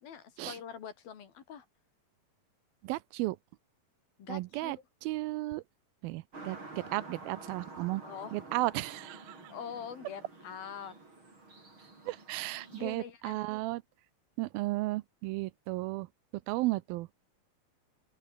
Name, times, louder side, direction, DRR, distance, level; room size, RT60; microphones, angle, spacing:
voice 1, 0.0-1.7 4.2-4.7 8.0-8.4 9.5-11.0 12.7-13.4, left 8 dB, 75° left, 4.8 m, -44 dB
voice 2, 2.8-3.4 4.3-4.8 5.0-5.6 6.0-8.0 8.3-9.4 12.1-13.8 14.4-16.1 16.5-17.2, right 19 dB, 80° right, 2.5 m, -34 dB
sound 1, 6.3-12.8, right 2 dB, 30° right, 7.5 m, -49 dB
open air
omnidirectional pair, 4.3 m